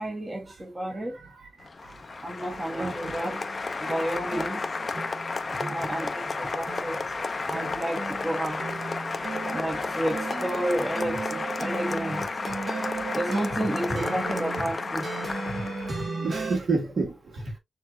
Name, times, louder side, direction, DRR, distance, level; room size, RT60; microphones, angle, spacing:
voice 1, 0.0-1.2 2.2-3.4 3.8-4.6 5.7-7.0 7.5-8.7 9.5-12.2 13.1-15.0, right 1 dB, 25° right, 1.2 m, -31 dB
Applause, 1.6-16.1, left 3 dB, 35° left, 0.6 m, -32 dB
sound 1, 2.4-16.6, right 3 dB, 45° right, 1.5 m, -36 dB
voice 2, 2.4-3.1 4.0-4.3 6.0-6.5 6.7-7.2 13.9-14.1 16.2-17.5, right 3 dB, 65° right, 2.2 m, -32 dB
6.4 x 2.8 x 2.7 m
wide cardioid pair, 120°, 0 cm